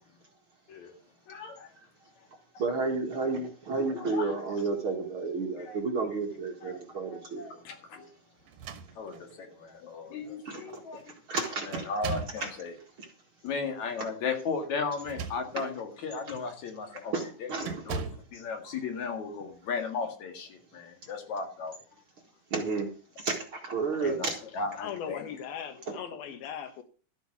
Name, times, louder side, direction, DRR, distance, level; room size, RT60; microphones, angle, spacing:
voice 1, 1.3-1.7 3.9-4.5 5.7-5.8 6.6-6.8 7.4-8.1 9.0-11.0 11.7-12.7 13.4-17.1 17.4-18.0 18.3-21.7 24.0-24.3 24.5-25.2, left 4 dB, 55° left, 3.1 m, -35 dB
voice 2, 2.6-7.4 7.9-8.0 10.5-10.6 11.3-11.9 12.4-12.5 17.1-17.8 18.6-18.7 22.5-22.9 23.2-24.4, right 4 dB, 45° right, 2.1 m, -31 dB
sound 1, 8.5-9.4 10.2-10.3 10.7-11.1 11.7-12.5 14.9-15.8 16.3-16.5 17.6-18.3, right 5 dB, 70° right, 2.7 m, -38 dB
voice 3, 24.8-26.8, left 8 dB, 85° left, 3.3 m, -39 dB
13.0 x 8.2 x 6.1 m
omnidirectional pair, 4.1 m